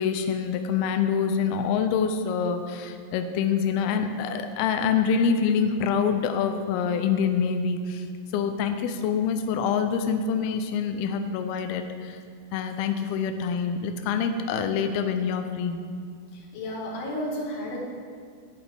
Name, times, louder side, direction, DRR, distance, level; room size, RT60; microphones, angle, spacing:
voice 1, 0.0-8.1 8.3-12.2 12.5-15.8, left 6 dB, 90° left, 7 dB, 2.2 m, -26 dB
voice 2, 16.3-17.8, left 1 dB, 70° left, -3 dB, 3.9 m, -32 dB
17.0 x 8.3 x 3.5 m, 2.1 s
omnidirectional pair, 5.1 m